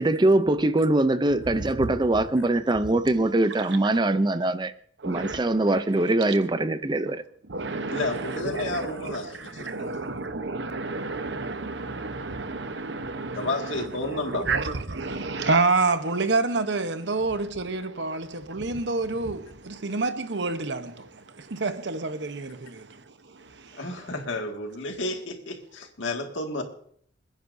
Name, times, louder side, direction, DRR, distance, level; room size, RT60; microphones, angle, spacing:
voice 1, 0.0-4.7 5.1-7.2, right 2 dB, 25° right, 0.5 m, -22 dB
voice 2, 1.6-1.9 3.7-3.8 5.0-5.4 7.5-24.1, right 3 dB, 65° right, 1.0 m, -29 dB
voice 3, 7.9-10.0 13.3-14.5 23.8-26.6, left 2 dB, 80° left, 2.1 m, -31 dB
28.0 x 10.0 x 2.7 m
head